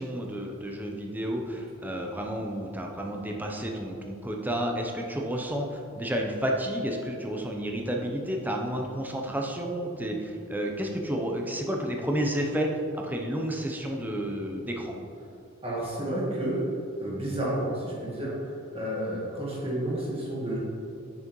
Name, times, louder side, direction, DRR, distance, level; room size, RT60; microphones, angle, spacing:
voice 1, 0.0-15.0, equal, 10° right, 1 dB, 0.7 m, -31 dB
voice 2, 15.6-16.6 17.0-20.6, right 1 dB, 30° right, -5 dB, 1.6 m, -31 dB
9.0 x 6.1 x 3.1 m, 2.5 s
head